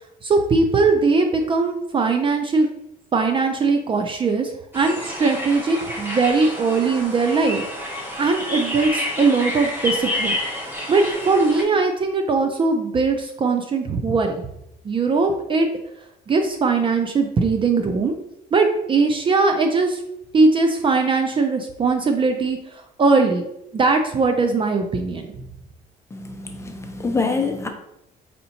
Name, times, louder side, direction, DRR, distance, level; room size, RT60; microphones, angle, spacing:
voice 1, 0.2-2.7 3.1-7.6 8.2-10.4 10.9-14.4 14.8-15.7 16.3-18.1 18.5-20.0 20.3-23.4 23.7-25.3, right 4 dB, 30° right, 5 dB, 0.4 m, -20 dB
sound 1, 4.7-11.6, left 1 dB, 10° right, 1.1 m, -29 dB
voice 2, 26.1-27.7, left 4 dB, 15° left, 4 dB, 0.6 m, -25 dB
5.3 x 2.8 x 2.7 m, 0.80 s
cardioid pair, 110°, 17 cm